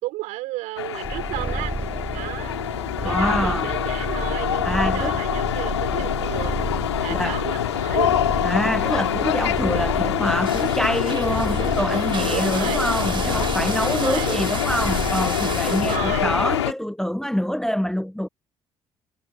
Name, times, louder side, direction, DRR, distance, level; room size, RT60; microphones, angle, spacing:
voice 1, 0.0-1.7 2.1-2.6 3.0-6.5 7.0-8.1 12.3-12.9 13.3-14.4 15.6-16.3, right 19 dB, 65° right, 3.5 m, -33 dB
sound 1, 0.8-16.7, left 11 dB, 80° left, 2.1 m, -25 dB
Purr, 1.0-16.4, right 2 dB, 15° right, 1.4 m, -32 dB
voice 2, 3.0-3.7 4.6-5.2 7.1-7.4 8.4-18.3, equal, 5° left, 0.8 m, -25 dB
sound 2, 10.4-16.0, right 6 dB, 35° right, 2.3 m, -33 dB
figure-of-eight pair, 50°, 14 cm